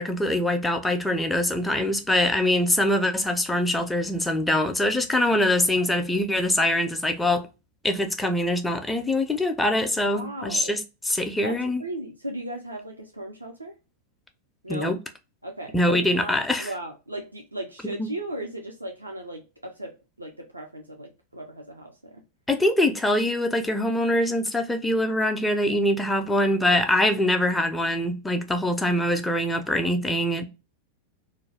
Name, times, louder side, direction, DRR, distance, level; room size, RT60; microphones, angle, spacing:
voice 1, 0.0-7.5 7.8-10.8 11.1-11.8 14.7-15.0 15.7-16.7 22.5-30.5, left 1 dB, 5° left, 0.4 m, -23 dB
voice 2, 10.1-10.7 11.4-13.8 14.6-14.9 15.4-22.2, right 1 dB, 85° right, 0.4 m, -36 dB
2.4 x 2.2 x 3.3 m
figure-of-eight pair, 90°, 0 cm